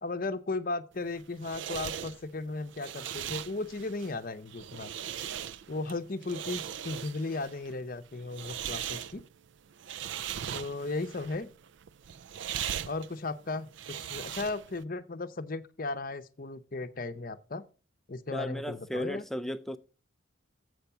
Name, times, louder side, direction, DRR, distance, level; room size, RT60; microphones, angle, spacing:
voice 1, 0.0-4.9 5.7-9.2 10.5-11.5 12.8-17.6 18.1-19.3, left 3 dB, 45° left, 0.7 m, -36 dB
sound 1, 1.0-14.8, right 9 dB, 65° right, 0.4 m, -40 dB
voice 2, 18.3-19.8, equal, ahead, 0.4 m, -35 dB
7.8 x 5.8 x 6.7 m
head